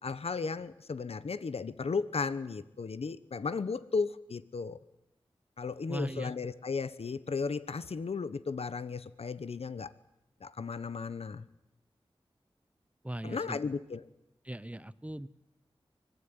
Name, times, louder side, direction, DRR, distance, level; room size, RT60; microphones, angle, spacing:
voice 1, 0.0-4.8 5.6-9.9 10.4-11.5 13.2-14.1, left 4 dB, 90° left, 15 dB, 1.1 m, -35 dB
voice 2, 5.9-6.3 13.0-13.6 14.4-15.3, right 1 dB, 15° right, 17 dB, 1.1 m, -38 dB
25.0 x 19.5 x 9.8 m, 0.86 s
wide cardioid pair, 60°, 10 cm